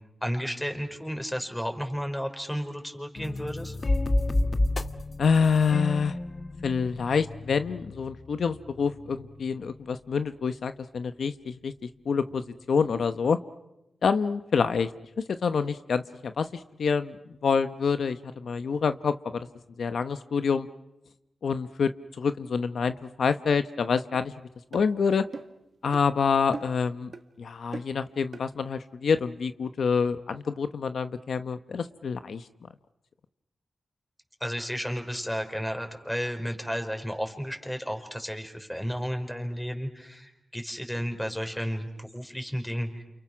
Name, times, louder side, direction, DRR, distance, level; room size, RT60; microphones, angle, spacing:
voice 1, 0.2-3.8 34.4-43.0, equal, 5° left, 5 dB, 5.0 m, -33 dB
sound 1, 3.2-9.9, left 2 dB, 45° left, 1.3 m, -31 dB
voice 2, 5.2-6.2 6.6-11.7 12.1-13.4 14.0-14.9 15.3-17.2 17.4-19.5 19.8-20.7 21.4-21.9 22.2-24.3 24.7-25.2 25.8-27.1 27.4-32.4, left 5 dB, 80° left, 10 dB, 0.9 m, -27 dB
sound 2, 24.1-24.3 24.7-24.9 25.3-25.6 25.9-26.1 26.5-26.8 27.1-27.3 27.7-28.0 28.3-28.5, right 4 dB, 60° right, 1.6 m, -40 dB
29.5 x 29.0 x 6.2 m, 0.90 s
cardioid pair, 65°, 0 cm